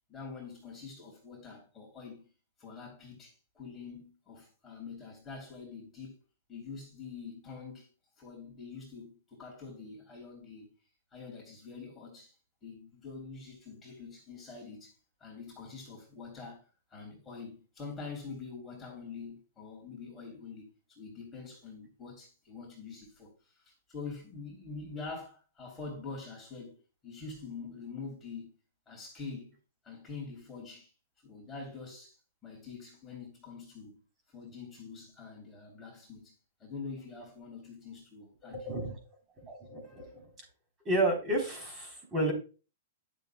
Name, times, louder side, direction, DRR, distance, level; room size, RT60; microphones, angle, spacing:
voice 1, 0.1-2.3 2.6-6.2 6.5-7.9 8.2-10.7 11.1-12.3 12.6-14.9 15.2-26.8 27.0-28.5 28.9-29.6 29.8-30.9 31.2-32.2 32.4-34.0 34.3-36.3 36.6-38.7, left 4 dB, 15° left, 3.1 m, -45 dB
voice 2, 38.4-39.0 39.4-40.3 40.9-42.3, right 1 dB, 20° right, 3.7 m, -31 dB
10.5 x 6.8 x 2.2 m
hypercardioid pair, 150°, 0 cm